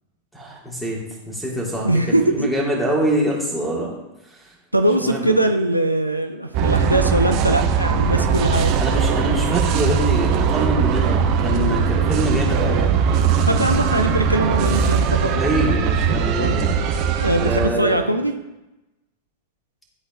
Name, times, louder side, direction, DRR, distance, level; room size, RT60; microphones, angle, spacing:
voice 1, 0.3-1.0 1.3-3.9 4.3-4.4 5.0-5.4 8.8-12.9 15.3-16.8 17.4-18.0, equal, ahead, -3 dB, 2.0 m, -25 dB
voice 2, 1.8-2.5 4.7-8.7 13.4-15.4 16.4-16.5 17.2-18.3, right 1 dB, 90° right, 5 dB, 0.5 m, -21 dB
sound 1, 6.5-17.7, right 6 dB, 40° right, 0.7 m, -20 dB
12.0 x 4.0 x 2.6 m, 0.97 s
figure-of-eight pair, 90°, 0 cm